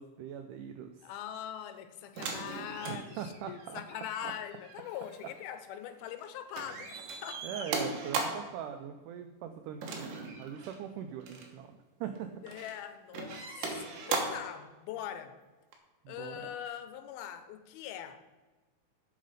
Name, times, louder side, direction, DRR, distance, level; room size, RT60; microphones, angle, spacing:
voice 1, 0.0-1.1 2.9-3.8 4.2-4.3 7.4-12.3 16.1-16.6, right 8 dB, 85° right, 7 dB, 1.8 m, -41 dB
voice 2, 1.0-7.7 12.4-15.4 16.1-18.2, left 10 dB, 90° left, 9 dB, 2.6 m, -42 dB
sound 1, 2.2-6.3 6.5-8.6 9.8-10.8 11.2-11.5 12.2-12.8 13.1-14.5 15.7-15.8, right 4 dB, 65° right, 2.6 m, -38 dB
7.8 x 6.6 x 5.0 m, 1.2 s
omnidirectional pair, 4.3 m